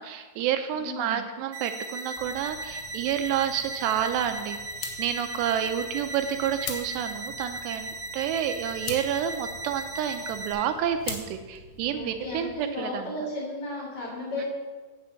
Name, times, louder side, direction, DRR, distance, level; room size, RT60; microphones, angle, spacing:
voice 1, 0.0-4.6 5.0-13.1 14.4-14.5, right 9 dB, 80° right, 7 dB, 2.7 m, -29 dB
voice 2, 0.7-1.2 11.9-14.5, left 2 dB, 45° left, -5 dB, 4.9 m, -34 dB
sound 1, 1.5-10.5, right 2 dB, 25° right, 1.4 m, -37 dB
sound 2, 2.2-12.5, left 6 dB, 85° left, 3.5 m, -43 dB
10.0 x 6.1 x 7.7 m, 1.3 s
omnidirectional pair, 5.0 m